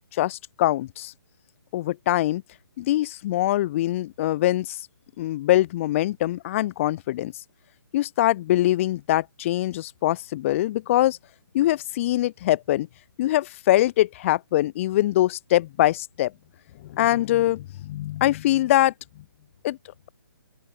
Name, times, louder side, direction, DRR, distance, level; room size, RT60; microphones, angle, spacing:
voice 1, 0.1-1.1 1.7-2.4 2.8-4.8 5.2-7.3 7.9-11.2 11.5-12.9 13.2-16.3 16.8-18.9 19.6-19.8, left 14 dB, 35° left, 2.4 m, -23 dB
open air
figure-of-eight pair, 140°, 12 cm